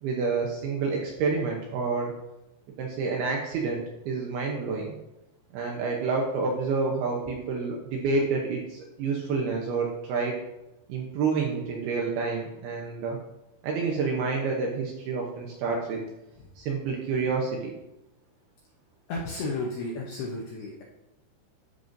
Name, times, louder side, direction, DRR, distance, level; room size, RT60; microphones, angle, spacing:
voice 1, 0.0-2.1 2.8-5.0 5.5-10.3 10.9-13.2 13.6-16.0 16.6-17.7, right 4 dB, 75° right, -1 dB, 2.3 m, -28 dB
voice 2, 19.1-20.8, left 2 dB, 80° left, -2 dB, 2.2 m, -33 dB
13.0 x 5.4 x 2.6 m, 0.91 s
omnidirectional pair, 5.5 m